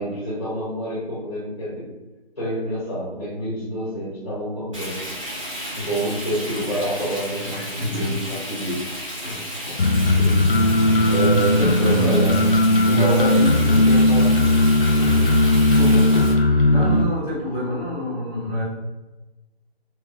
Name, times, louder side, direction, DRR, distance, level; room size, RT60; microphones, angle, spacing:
voice 1, 0.0-1.9 2.4-5.0 5.9-8.8 9.6-9.7 10.1-12.4 12.8-14.5 15.6-16.4, right 1 dB, 25° left, -8 dB, 0.8 m, -27 dB
Frying (food), 4.7-16.3, equal, 30° right, 1.5 m, -33 dB
voice 2, 7.4-8.2 9.2-9.9 11.3-11.5 11.8-12.3 12.8-13.3 13.7-14.1 15.0-15.5 16.7-18.6, equal, ahead, -9 dB, 1.3 m, -29 dB
sound 1, 9.8-17.0, left 1 dB, 60° left, 0.6 m, -17 dB
3.2 x 3.1 x 2.4 m, 1.2 s
figure-of-eight pair, 175°, 31 cm